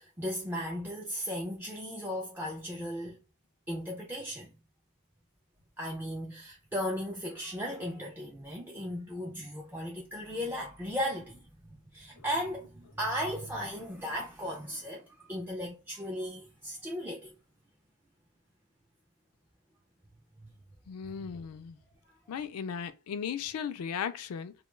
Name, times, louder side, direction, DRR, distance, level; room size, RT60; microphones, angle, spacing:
voice 1, 0.0-3.2 3.7-4.5 5.8-11.4 11.9-17.3 20.4-20.5 21.2-21.3 22.1-22.2, equal, 10° right, 0.3 m, -36 dB
voice 2, 20.9-21.8 22.3-24.5, left 7 dB, 75° left, 0.3 m, -36 dB
2.2 x 2.2 x 3.0 m
head